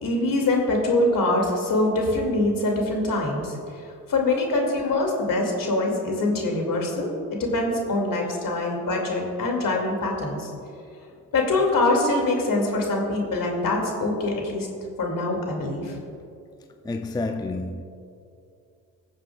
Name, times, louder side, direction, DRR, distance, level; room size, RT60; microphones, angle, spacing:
voice 1, 0.0-3.5 4.1-7.1 7.4-10.5 11.3-14.7 15.0-15.9, left 2 dB, 55° left, 2.6 m, -24 dB
voice 2, 16.8-17.8, left 2 dB, 10° left, 0.5 m, -29 dB
20.5 x 7.4 x 2.4 m
hypercardioid pair, 50°, 41 cm